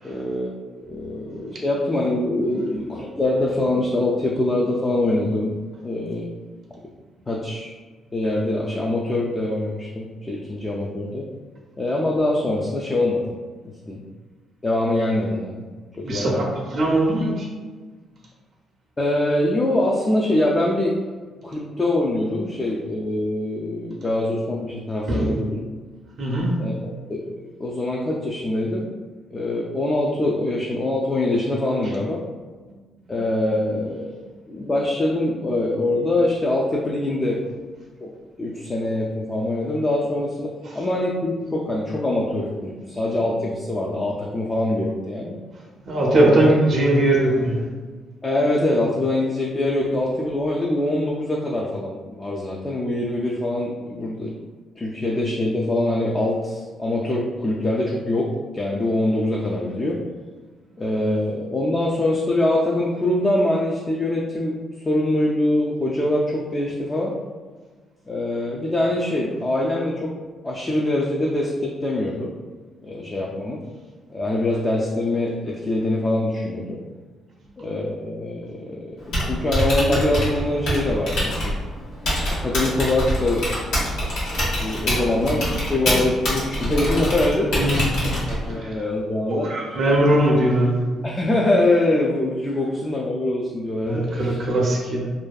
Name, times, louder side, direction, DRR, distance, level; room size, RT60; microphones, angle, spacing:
voice 1, 0.0-5.5 5.8-6.3 7.3-7.7 8.1-11.3 11.8-13.2 13.6-14.0 14.6-15.6 15.9-16.5 19.0-21.0 21.4-25.6 26.6-27.2 27.6-28.9 29.3-32.2 33.1-34.1 34.5-37.4 38.0-38.1 38.4-45.4 46.2-46.4 48.2-54.3 54.8-60.0 60.8-67.1 68.1-70.1 70.4-72.3 72.8-73.6 74.1-76.8 77.6-78.8 79.3-81.6 82.4-83.4 84.6-89.5 91.0-94.4, left 1 dB, 25° left, -3 dB, 0.3 m, -24 dB
voice 2, 16.0-17.5 25.1-25.3 26.2-26.6 45.9-47.7 87.6-88.8 89.3-91.0 93.8-95.1, right 1 dB, 60° right, -3 dB, 0.5 m, -20 dB
Typing, 79.0-88.6, equal, 80° left, 1.0 m, -25 dB
2.5 x 2.2 x 2.2 m, 1.4 s
cardioid pair, 90°, 0 cm